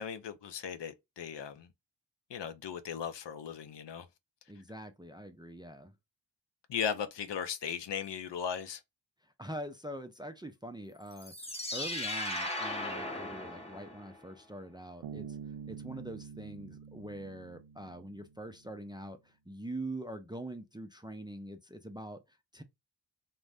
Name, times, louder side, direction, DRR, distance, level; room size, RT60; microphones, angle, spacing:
voice 1, 0.0-1.7 2.3-4.1 6.7-8.8 15.6-15.8, left 7 dB, 70° left, 0.6 m, -37 dB
voice 2, 4.5-6.0 9.2-15.4 15.7-22.6, right 1 dB, 10° right, 0.4 m, -44 dB
sound 1, 11.1-14.2, left 1 dB, 15° left, 0.8 m, -37 dB
Bass guitar, 15.0-18.6, right 7 dB, 75° right, 0.6 m, -46 dB
2.5 x 2.1 x 3.3 m
cardioid pair, 40°, 45 cm